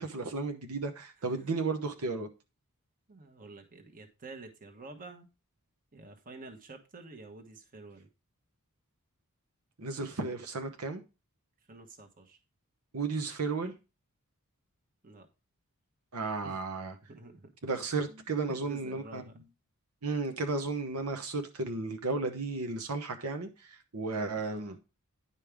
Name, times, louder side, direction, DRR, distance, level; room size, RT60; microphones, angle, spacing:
voice 1, 0.0-2.3 9.8-11.0 12.9-13.7 16.1-16.9 17.6-19.2 20.0-24.7, right 3 dB, 80° right, 1.0 m, -34 dB
voice 2, 1.2-1.7 3.1-5.3 5.9-8.1 11.7-12.4 15.0-15.3 16.4-16.6 17.1-17.5 18.1-19.4 24.3-24.8, right 3 dB, 40° right, 1.3 m, -49 dB
10.0 x 5.4 x 3.5 m
head